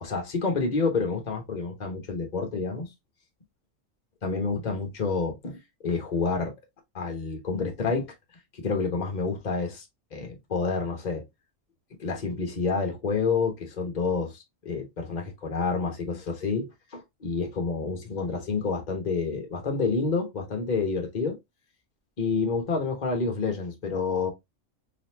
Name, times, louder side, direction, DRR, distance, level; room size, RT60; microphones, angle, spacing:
voice 1, 0.0-2.9 4.2-6.5 6.9-8.1 8.5-9.8 10.1-11.2 12.0-16.7 17.2-21.4 22.2-24.3, left 4 dB, 35° left, 1.2 m, -28 dB
4.0 x 3.0 x 2.7 m
omnidirectional pair, 1.4 m